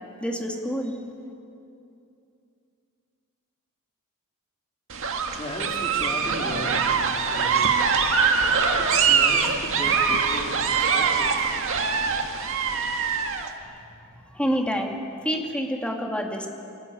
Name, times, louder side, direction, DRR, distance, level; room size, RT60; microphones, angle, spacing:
voice 1, 0.2-0.9 14.3-15.0 15.2-16.5, equal, 5° left, 1 dB, 2.3 m, -27 dB
sound 1, 4.9-13.5, right 5 dB, 65° right, 1.9 m, -23 dB
voice 2, 5.3-7.0 7.3-7.8 8.8-11.5, left 1 dB, 25° left, -2 dB, 4.1 m, -36 dB
24.0 x 19.5 x 9.3 m, 2.6 s
head